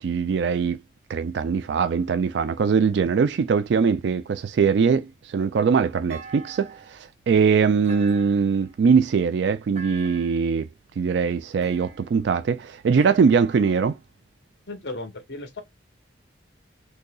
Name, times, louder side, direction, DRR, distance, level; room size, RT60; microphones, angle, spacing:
voice 1, 0.0-0.8 1.1-10.7 11.0-13.9, right 6 dB, 65° right, 0.3 m, -22 dB
Thump thud, 6.1-7.0 7.8-8.8 9.7-10.5 11.6-12.3 13.0-14.0, right 3 dB, 35° right, 1.1 m, -44 dB
voice 2, 14.7-15.6, left 2 dB, 60° left, 1.0 m, -35 dB
3.9 x 2.8 x 2.2 m
head